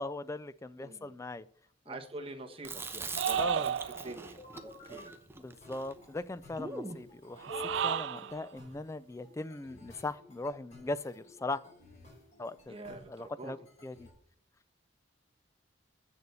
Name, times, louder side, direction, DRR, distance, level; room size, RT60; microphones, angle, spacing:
voice 1, 0.0-1.5 1.9-2.0 3.4-3.7 4.9-5.0 5.4-7.5 7.8-11.6 12.4-13.6 13.8-14.1, left 2 dB, 15° left, 16 dB, 0.3 m, -39 dB
voice 2, 0.8-1.2 1.9-3.7 4.0-5.1 8.1-8.3 12.7-13.5, right 2 dB, 30° right, 4 dB, 1.4 m, -46 dB
Chewing mastication, 2.6-7.0, right 3 dB, 15° right, 0.9 m, -42 dB
sound 1, 3.2-4.3 7.4-8.4, right 9 dB, 70° right, 0.3 m, -32 dB
sound 2, 4.4-5.2 5.6-14.1, left 2 dB, 40° left, 5.1 m, -51 dB
8.1 x 6.8 x 6.8 m, 0.62 s
head